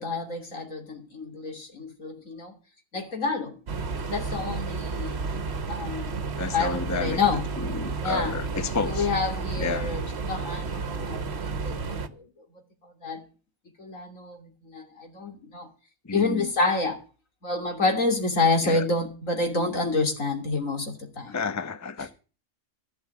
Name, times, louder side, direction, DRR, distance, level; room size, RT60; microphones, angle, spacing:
voice 1, 0.0-2.5 2.9-3.6 4.0-5.2 5.7-6.1 6.5-7.5 8.0-8.3 8.9-12.4 12.8-13.2 13.8-15.7 16.1-17.0 17.4-21.4, left 3 dB, 80° left, 3.4 m, -28 dB
sound 1, 3.7-12.1, right 4 dB, 55° right, 1.4 m, -31 dB
voice 2, 6.4-7.2 7.6-9.1 9.6-9.9 16.0-16.5 18.6-18.8 21.3-22.1, left 4 dB, 15° left, 0.7 m, -31 dB
15.5 x 6.4 x 8.4 m
omnidirectional pair, 1.3 m